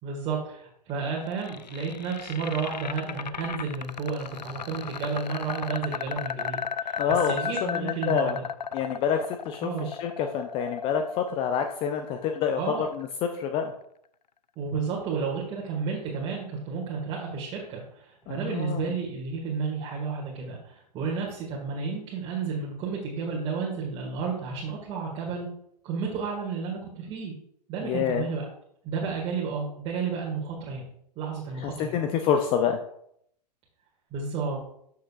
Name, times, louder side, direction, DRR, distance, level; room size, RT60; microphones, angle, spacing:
voice 1, 0.0-8.4 9.6-9.9 12.6-12.9 14.6-25.5 25.8-27.3 27.7-28.5 28.8-30.9 31.2-32.0 34.1-34.6, right 5 dB, 25° right, -3 dB, 1.9 m, -32 dB
sound 1, 1.1-13.1, left 7 dB, 80° left, 0.4 m, -35 dB
voice 2, 7.0-7.3 7.6-8.4 8.7-13.7 18.3-18.9 27.8-28.3 31.6-32.8, left 7 dB, 25° left, 7 dB, 0.6 m, -27 dB
12.5 x 6.7 x 2.4 m, 0.70 s
figure-of-eight pair, 110°, 21 cm